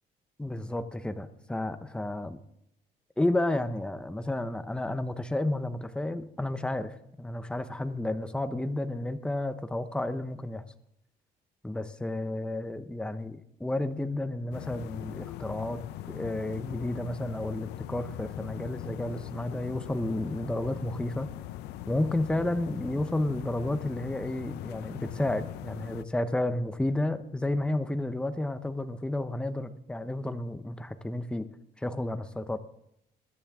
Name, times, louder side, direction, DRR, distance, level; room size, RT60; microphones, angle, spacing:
voice 1, 0.4-2.4 3.2-10.6 11.6-15.8 16.1-21.3 21.9-31.5 31.8-32.6, left 1 dB, 5° left, 10 dB, 0.9 m, -31 dB
sound 1, 14.5-26.0, left 14 dB, 85° left, 0.6 m, -41 dB
22.0 x 10.0 x 3.6 m, 0.78 s
cardioid pair, 110°, 17 cm